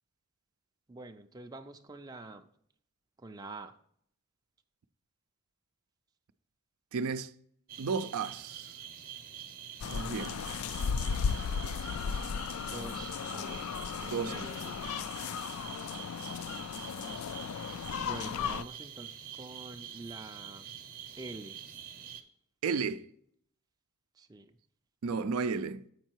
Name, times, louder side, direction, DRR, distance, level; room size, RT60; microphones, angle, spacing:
voice 1, 0.9-2.5 3.2-3.7 12.5-13.6 14.0-14.7 18.0-20.7 21.2-21.6 24.2-24.5, right 2 dB, 20° right, 0.4 m, -46 dB
voice 2, 6.9-7.3 7.8-8.7 9.9-10.5 14.1-14.5 22.6-23.1 25.0-25.8, right 5 dB, 80° right, 0.4 m, -33 dB
sound 1, 7.7-22.2, right 9 dB, 40° right, 0.8 m, -46 dB
sound 2, 9.8-18.6, left 6 dB, 75° left, 0.3 m, -35 dB
7.5 x 5.4 x 4.5 m
head